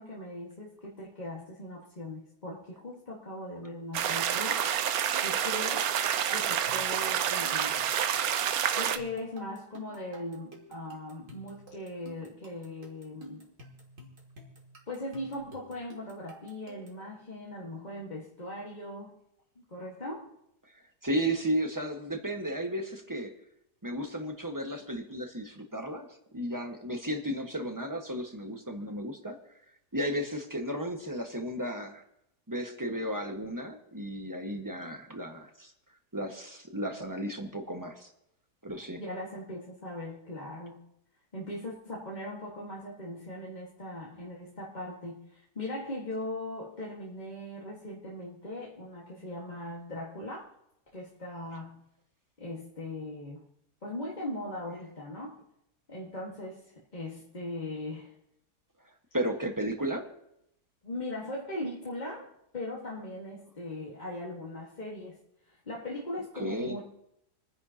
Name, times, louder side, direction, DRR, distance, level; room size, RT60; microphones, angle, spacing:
voice 1, 0.0-4.6 5.2-5.9 6.3-8.0 8.7-13.5 14.9-19.2 19.7-20.3 39.0-40.9 41.3-50.5 50.9-51.8 52.4-53.4 53.8-55.4 55.9-58.1 60.8-66.8, left 1 dB, 30° left, -4 dB, 1.6 m, -39 dB
sound 1, 3.9-9.0, right 9 dB, 70° right, 1.1 m, -28 dB
sound 2, 4.8-17.1, right 2 dB, 50° right, 2.4 m, -51 dB
voice 2, 21.0-23.3 23.8-26.1 26.3-29.4 29.9-32.0 32.5-35.7 36.1-38.1 38.6-39.0 59.1-60.1 66.3-66.7, equal, 15° right, 3 dB, 1.3 m, -34 dB
28.0 x 10.0 x 2.8 m, 0.80 s
omnidirectional pair, 1.7 m